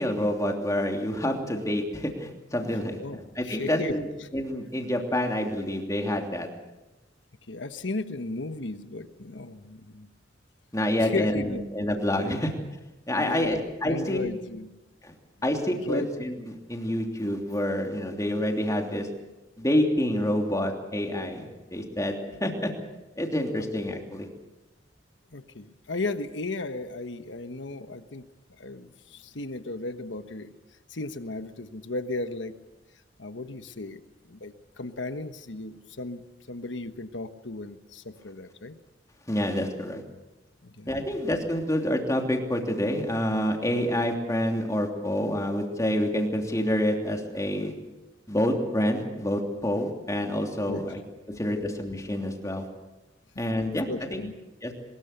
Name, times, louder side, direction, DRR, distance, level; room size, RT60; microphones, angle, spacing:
voice 1, 0.0-3.0 3.4-4.0 4.3-6.5 10.7-12.5 13.1-14.3 15.0-15.1 15.4-19.1 19.6-22.7 23.2-24.3 39.3-40.0 40.9-47.7 48.3-51.0 51.4-52.7 53.4-54.2 54.6-54.7, left 1 dB, 20° left, 2 dB, 3.0 m, -27 dB
voice 2, 3.4-4.3 7.5-10.1 11.0-11.6 12.2-12.5 13.1-14.7 15.7-16.1 25.3-28.3 28.6-30.5 30.9-32.6 33.2-36.2 36.5-38.8 40.6-41.3 50.7-51.0 51.5-51.6 53.7-54.4, left 2 dB, 90° left, 9 dB, 1.3 m, -35 dB
23.0 x 21.0 x 6.7 m, 1.0 s
head